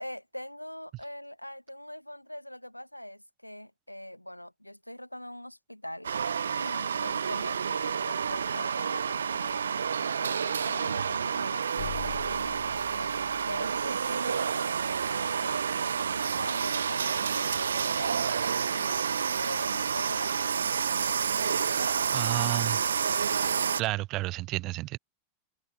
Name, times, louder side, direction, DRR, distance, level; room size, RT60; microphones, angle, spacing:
voice 1, 0.0-13.1 13.4-19.0 19.4-20.8 21.8-22.8, left 1 dB, 90° left, 7.6 m, -43 dB
sound 1, 6.0-23.8, right 7 dB, 70° right, 0.3 m, -29 dB
sound 2, 11.8-14.2, left 18 dB, 50° left, 1.3 m, -43 dB
voice 2, 22.1-22.8 23.8-25.0, right 19 dB, 40° right, 2.3 m, -31 dB
figure-of-eight pair, 90°, 0 cm